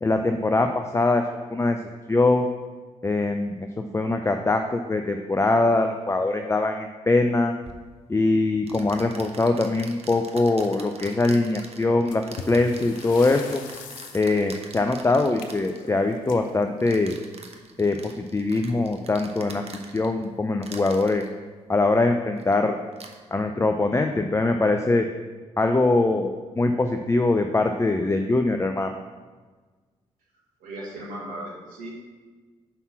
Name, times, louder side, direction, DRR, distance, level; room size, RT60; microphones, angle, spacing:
voice 1, 0.0-1.2 1.5-1.8 2.1-2.5 3.0-3.7 3.9-7.5 8.1-13.6 14.1-17.1 17.8-19.6 19.9-21.2 21.7-22.8 23.3-25.1 25.6-28.9, left 2 dB, 20° left, 5 dB, 0.5 m, -22 dB
Tic Tac sound fast, 7.6-7.8 8.7-15.8 16.8-20.3 20.6-21.3 22.4-22.5 22.9-23.2, right 4 dB, 40° right, 0.8 m, -44 dB
sound 1, 12.1-17.5 18.7-18.9 19.2-19.3 20.0-20.1 20.7-21.0, left 6 dB, 65° left, 0.6 m, -43 dB
voice 2, 30.6-31.9, right 1 dB, 70° right, -4 dB, 1.6 m, -36 dB
5.4 x 4.1 x 5.8 m, 1.4 s
hypercardioid pair, 40°, 15 cm